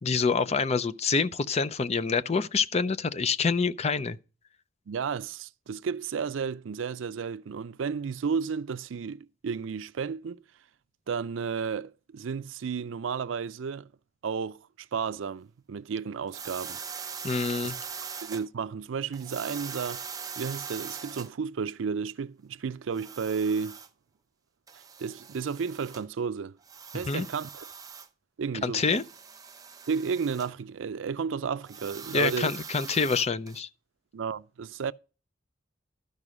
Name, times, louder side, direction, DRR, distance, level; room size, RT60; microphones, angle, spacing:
voice 1, 0.0-4.2 17.2-17.8 27.1-27.3 28.6-29.0 32.1-33.7, left 4 dB, 35° left, 0.5 m, -26 dB
voice 2, 4.9-10.4 11.1-13.9 14.2-16.8 18.2-20.0 20.4-23.8 24.7-26.6 26.9-27.7 28.4-28.8 29.9-32.5 34.1-34.9, right 6 dB, 85° right, 0.4 m, -32 dB
sound 1, 16.3-18.5 19.1-21.3 22.9-23.9 24.7-26.0 26.6-28.1 28.8-30.5 31.6-33.6, right 6 dB, 20° right, 0.7 m, -41 dB
12.5 x 5.3 x 4.9 m
head